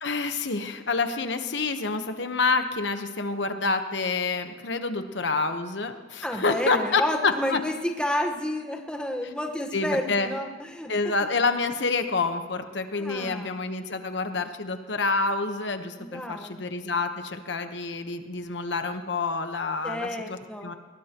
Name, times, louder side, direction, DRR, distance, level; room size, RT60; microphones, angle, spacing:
voice 1, 0.0-7.6 9.7-10.3 10.9-20.7, left 3 dB, 70° left, 7 dB, 1.1 m, -28 dB
voice 2, 6.2-10.9 11.2-11.3 13.0-13.6 16.0-16.7 19.8-20.7, left 1 dB, 5° left, 2 dB, 1.2 m, -31 dB
21.5 x 19.5 x 3.0 m, 1.5 s
head